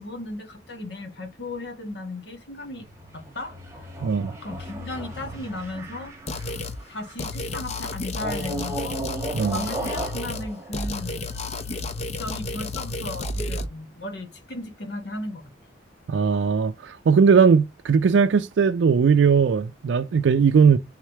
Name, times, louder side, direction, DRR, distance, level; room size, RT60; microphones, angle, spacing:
voice 1, 0.0-2.9 3.1-3.9 4.4-6.1 6.9-9.1 9.4-11.2 12.0-15.4, left 2 dB, 65° left, 1.6 m, -35 dB
sound 1, 2.7-7.4 8.1-11.7, right 1 dB, 15° right, 1.4 m, -36 dB
voice 2, 4.0-4.3 9.3-9.6 16.1-20.8, right 6 dB, 75° right, 0.4 m, -19 dB
sound 2, 6.3-6.8 7.2-10.5 10.7-13.7, left 2 dB, 35° left, 0.6 m, -31 dB
3.6 x 3.1 x 4.6 m
head